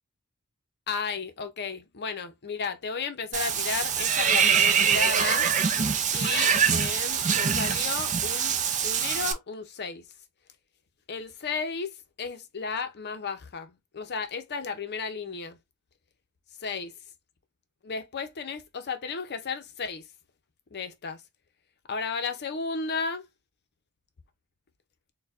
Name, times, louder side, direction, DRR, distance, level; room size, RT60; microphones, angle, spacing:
voice 1, 0.9-5.5 6.1-10.1 11.1-15.6 16.6-17.0 17.8-20.1 20.7-21.2 21.9-23.3, left 5 dB, 50° left, 0.6 m, -34 dB
Water / Bathtub (filling or washing), 3.3-9.3, right 7 dB, 35° right, 0.4 m, -24 dB
4.4 x 2.2 x 2.5 m
head